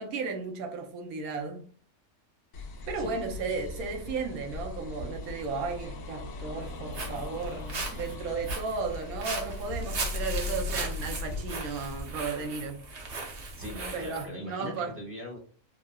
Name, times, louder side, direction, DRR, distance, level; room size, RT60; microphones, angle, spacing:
voice 1, 0.0-1.6 2.9-12.8 13.9-14.9, right 4 dB, 80° right, 1.1 m, -34 dB
sound 1, 2.5-12.0, left 3 dB, 75° left, 1.0 m, -38 dB
Walk footsteps, 6.6-14.3, right 3 dB, 60° right, 0.9 m, -38 dB
voice 2, 13.5-15.4, left 1 dB, 10° right, 0.7 m, -40 dB
3.6 x 2.0 x 2.2 m
omnidirectional pair, 1.5 m